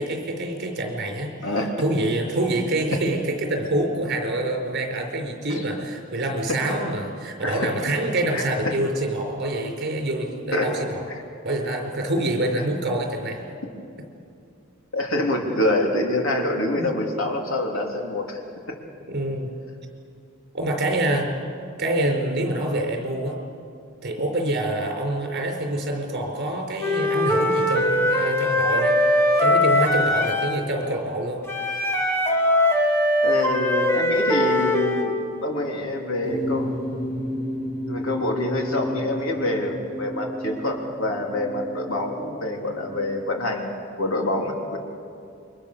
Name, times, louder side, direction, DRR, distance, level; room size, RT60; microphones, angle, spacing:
voice 1, 0.0-1.3 1.8-11.0 11.4-13.4 16.7-16.9 19.1-19.5 20.5-21.3 21.8-23.4 24.0-29.0 29.4-31.4, right 1 dB, 55° right, 3 dB, 4.8 m, -26 dB
voice 2, 1.4-1.8 5.5-5.6 7.4-7.7 8.3-8.4 10.5-10.7 14.9-18.4 18.7-18.8 33.2-36.7 37.9-44.8, left 1 dB, 80° left, 1 dB, 3.5 m, -26 dB
Wind instrument woodwind instrument, 26.8-30.6 31.5-35.1, left 1 dB, 15° left, 2.7 m, -21 dB
sound 1, 36.2-43.5, equal, 40° left, 7.7 m, -32 dB
29.0 x 24.0 x 7.0 m, 2.5 s
head